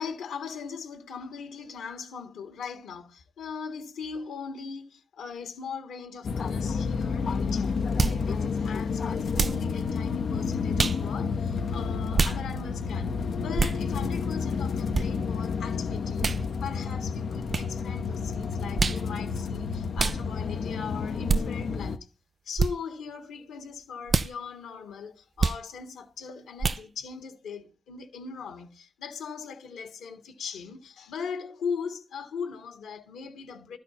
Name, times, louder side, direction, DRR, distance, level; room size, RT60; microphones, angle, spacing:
voice 1, 0.0-16.4 16.6-22.1 22.4-33.8, left 6 dB, 85° left, 1.6 m, -39 dB
sound 1, 6.2-22.0, left 5 dB, 70° left, 0.7 m, -30 dB
sound 2, 8.0-8.2 9.3-9.6 10.8-11.0 12.1-12.4 13.6-13.8 14.9-15.1 16.2-16.4 17.5-17.7 18.8-19.0 20.0-20.2 21.3-21.4 22.6-22.7 24.1-24.3 25.4-25.6 26.6-26.8, right 4 dB, 50° right, 0.5 m, -25 dB
12.5 x 4.4 x 5.7 m
supercardioid pair, 40°, 0 cm